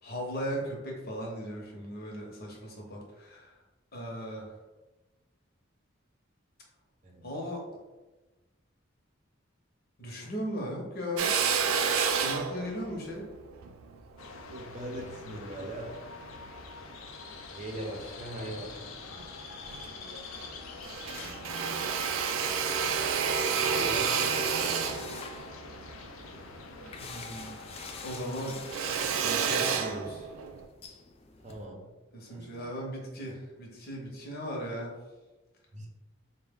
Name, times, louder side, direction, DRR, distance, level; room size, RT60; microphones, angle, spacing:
voice 1, 0.0-3.5 3.9-4.5 7.2-7.6 10.0-11.3 12.2-13.2 27.0-27.5 28.0-28.6 29.2-30.3 32.1-34.9, equal, 50° left, -1 dB, 0.9 m, -37 dB
Drill, 11.2-15.7 16.3-17.4 17.9-18.8 19.2-19.3 19.6-20.6 20.8-27.5 27.8-30.6, right 6 dB, 85° right, 0.4 m, -31 dB
sound 1, 14.2-29.6, left 4 dB, 85° left, 0.5 m, -46 dB
voice 2, 14.5-16.0 17.5-18.7 21.1-21.9 23.5-25.1 31.4-31.9 32.3-32.6 35.7-35.9, right 1 dB, 35° right, 0 dB, 0.7 m, -41 dB
sound 2, 21.2-31.6, left 5 dB, 30° left, 0.4 m, -47 dB
4.4 x 2.2 x 3.5 m, 1.1 s
head